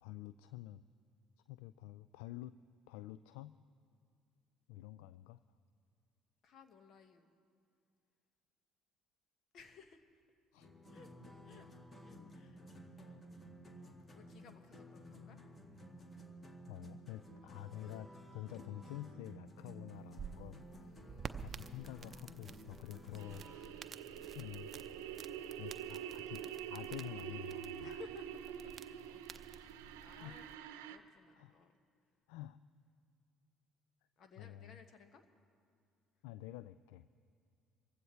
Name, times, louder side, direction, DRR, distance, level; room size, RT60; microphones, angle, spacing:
voice 1, 0.0-0.8 1.5-2.6 2.9-3.6 4.7-5.4 10.5-10.7 16.7-20.9 21.4-23.7 24.3-24.7 25.6-28.0 30.2-30.4 31.4-31.5 32.3-32.6 34.4-34.8 36.2-37.1, left 14 dB, 75° left, 14 dB, 0.3 m, -49 dB
voice 2, 6.4-7.3 9.5-10.0 10.9-11.1 11.4-11.7 12.0-12.6 12.9-13.2 13.8-15.4 15.7-15.8 17.4-17.8 20.8-21.5 26.0-26.1 27.8-29.7 30.0-31.8 34.2-35.2, left 5 dB, 55° left, 7 dB, 1.4 m, -60 dB
sound 1, 10.6-23.7, equal, 30° left, 1.8 m, -54 dB
sound 2, 19.9-30.6, right 6 dB, 40° right, 0.7 m, -52 dB
sound 3, 23.2-31.0, right 10 dB, 80° right, 0.7 m, -46 dB
26.0 x 15.5 x 3.1 m, 2.3 s
hypercardioid pair, 60°, 0 cm